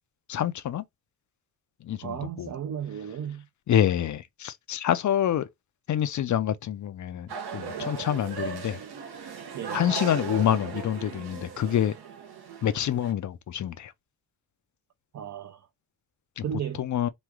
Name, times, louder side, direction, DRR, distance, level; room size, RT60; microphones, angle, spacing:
voice 1, 0.3-0.8 1.8-2.5 3.7-5.5 5.9-8.8 9.7-11.9 12.6-13.9 16.4-16.5 16.8-17.1, left 10 dB, 50° left, 0.5 m, -27 dB
voice 2, 2.0-3.5 9.5-9.8 15.1-15.7 16.4-16.9, right 8 dB, 45° right, 0.5 m, -34 dB
sound 1, 7.3-13.1, right 6 dB, 70° right, 0.9 m, -37 dB
3.1 x 2.4 x 3.4 m
wide cardioid pair, 140°, 40 cm